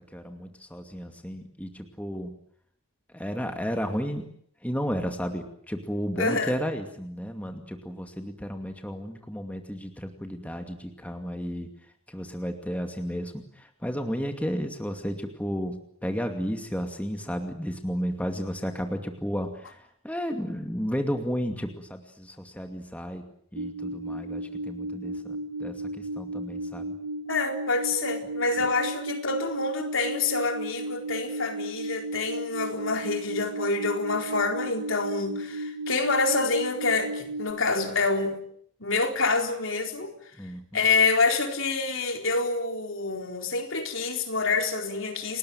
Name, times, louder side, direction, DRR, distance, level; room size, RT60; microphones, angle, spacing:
voice 1, 0.1-2.3 3.1-4.3 4.6-11.7 12.1-23.2 23.5-27.0 40.4-40.8, equal, 5° left, 2.4 m, -33 dB
voice 2, 6.2-6.6 27.3-38.4 38.8-40.1 40.7-45.4, left 3 dB, 65° left, 4.3 m, -27 dB
sound 1, 23.6-37.5, right 1 dB, 85° right, 2.6 m, -34 dB
29.5 x 20.0 x 9.2 m
head